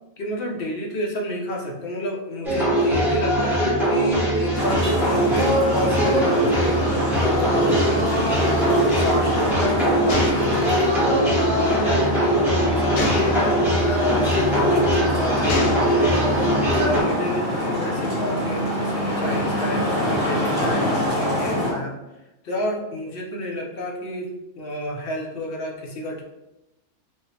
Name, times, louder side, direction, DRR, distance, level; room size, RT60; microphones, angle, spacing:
voice 1, 0.2-8.4 9.0-22.0 22.4-26.2, equal, 55° left, -1 dB, 0.7 m, -30 dB
sound 1, 2.4-17.0, right 1 dB, 5° right, 0.4 m, -21 dB
Traffic noise roadway noise, 4.5-21.7, left 1 dB, 40° left, 1.3 m, -25 dB
Gunshot gunfire, 10.1-11.4 13.0-13.7 14.5-14.9 15.5-16.3, left 2 dB, 85° left, 1.1 m, -28 dB
3.6 x 2.0 x 2.7 m, 0.97 s
omnidirectional pair, 1.4 m